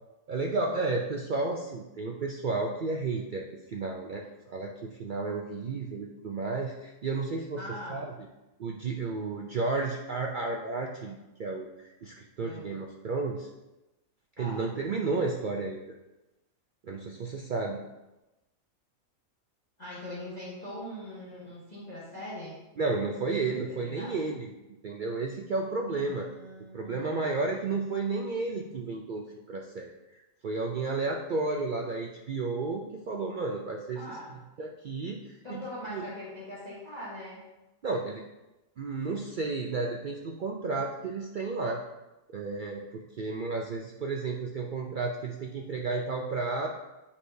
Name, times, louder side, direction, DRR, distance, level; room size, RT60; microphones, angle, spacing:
voice 1, 0.3-7.6 7.9-8.1 8.6-13.5 14.4-15.8 16.8-17.8 22.8-24.5 24.8-26.3 26.7-29.9 30.1-34.0 34.6-36.1 37.8-38.2 38.8-41.8 42.3-46.7, right 3 dB, 75° right, 1 dB, 0.4 m, -32 dB
voice 2, 7.6-8.1 12.4-12.8 14.4-14.6 19.8-22.6 23.4-24.2 25.9-27.8 33.9-34.4 35.4-37.4, left 1 dB, 30° left, -8 dB, 1.3 m, -42 dB
8.3 x 4.9 x 2.7 m, 1.0 s
omnidirectional pair, 1.5 m